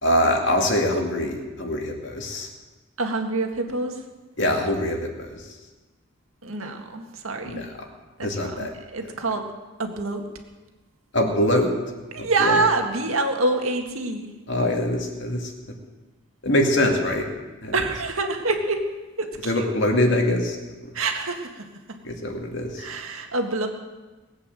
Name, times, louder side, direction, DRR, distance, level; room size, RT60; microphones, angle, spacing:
voice 1, 0.0-2.5 4.4-5.1 7.5-7.6 8.2-8.7 11.1-11.7 12.2-12.5 14.5-15.4 16.4-17.3 17.6-17.7 19.5-20.6 22.0-22.8, left 1 dB, 55° left, 2 dB, 2.4 m, -23 dB
voice 2, 3.0-4.0 6.4-7.6 8.2-9.4 9.8-10.2 12.1-14.3 17.7-18.8 19.2-19.8 20.9-22.0 22.8-23.7, right 3 dB, 80° right, 4 dB, 1.9 m, -26 dB
20.0 x 8.7 x 7.6 m, 1.2 s
head